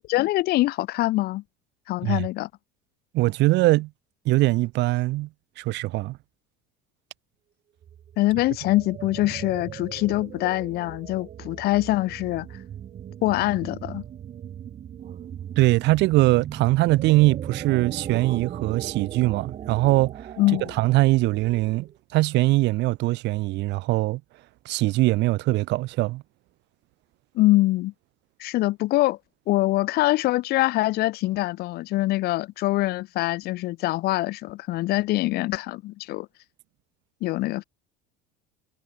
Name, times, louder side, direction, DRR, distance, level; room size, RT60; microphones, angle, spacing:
voice 1, 0.1-1.4 1.9-2.5 8.2-12.5 13.2-14.0 20.4-20.7 27.3-27.9 28.4-29.2 29.5-36.3 37.2-37.6, left 17 dB, 50° left, 0.7 m, -24 dB
voice 2, 3.1-3.9 4.3-5.3 5.6-6.2 15.6-20.3 20.8-24.2 24.7-26.2, right 19 dB, 55° right, 2.1 m, -22 dB
sound 1, 7.8-22.0, right 9 dB, 30° right, 1.6 m, -38 dB
cardioid pair, 145°, 21 cm